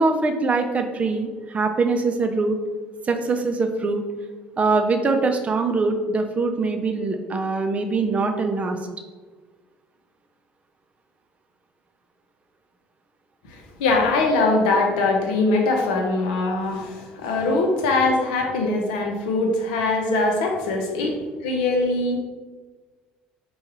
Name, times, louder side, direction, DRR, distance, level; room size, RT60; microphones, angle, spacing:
voice 1, 0.0-2.6 3.0-4.1 4.6-8.8, right 3 dB, 30° right, 5 dB, 0.4 m, -23 dB
voice 2, 13.5-22.2, left 3 dB, 80° left, 2 dB, 0.6 m, -22 dB
4.5 x 2.3 x 3.1 m, 1.4 s
hypercardioid pair, 70°, 4 cm